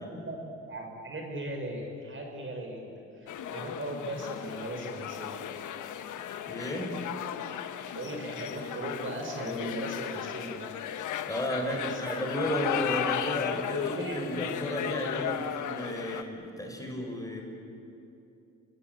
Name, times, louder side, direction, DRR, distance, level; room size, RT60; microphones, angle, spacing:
voice 1, 0.7-5.4 7.9-10.7 11.6-12.2 12.7-12.8 13.3-15.3, right 1 dB, 40° right, 2 dB, 5.7 m, -38 dB
sound 1, 3.3-16.2, left 9 dB, 80° left, 1.4 m, -35 dB
voice 2, 6.5-7.0 11.3-17.4, equal, 10° left, 1 dB, 5.6 m, -33 dB
29.0 x 19.5 x 9.3 m, 2.7 s
cardioid pair, 90°, 30 cm